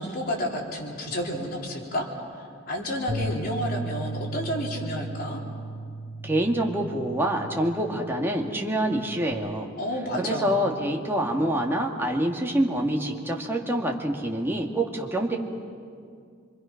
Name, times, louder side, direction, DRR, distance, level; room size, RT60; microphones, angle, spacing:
voice 1, 0.0-2.1 2.7-5.4 9.8-10.7, equal, 50° left, -1 dB, 3.6 m, -30 dB
Bass guitar, 3.1-9.3, right 2 dB, 30° right, 3.8 m, -36 dB
voice 2, 6.2-9.7 10.1-15.4, right 1 dB, 10° right, 0 dB, 2.1 m, -26 dB
26.5 x 24.5 x 5.9 m, 2.2 s
head